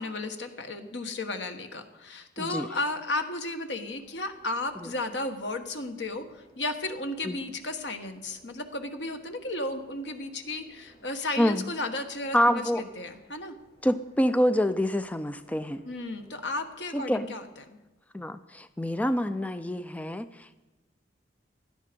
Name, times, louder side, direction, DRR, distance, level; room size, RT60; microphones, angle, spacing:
voice 1, 0.0-13.5 15.8-17.8, left 2 dB, 80° left, 7 dB, 1.4 m, -34 dB
voice 2, 2.4-2.7 7.2-7.4 11.4-11.7 12.3-12.8 13.8-15.8 16.9-17.3 18.1-20.6, equal, 10° left, 11 dB, 0.4 m, -26 dB
sound 1, 3.9-17.6, equal, 30° left, 6.0 m, -60 dB
16.5 x 11.5 x 5.2 m, 1.1 s
head